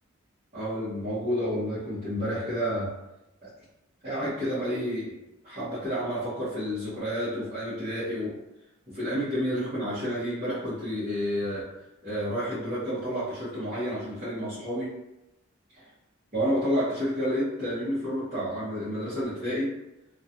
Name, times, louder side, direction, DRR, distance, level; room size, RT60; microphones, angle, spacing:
voice 1, 0.5-2.9 3.4-3.5 4.0-5.2 5.4-8.4 8.9-11.7 12.0-14.9 16.3-19.7, equal, 35° right, -13 dB, 0.8 m, -30 dB
2.3 x 2.2 x 2.7 m, 0.92 s
head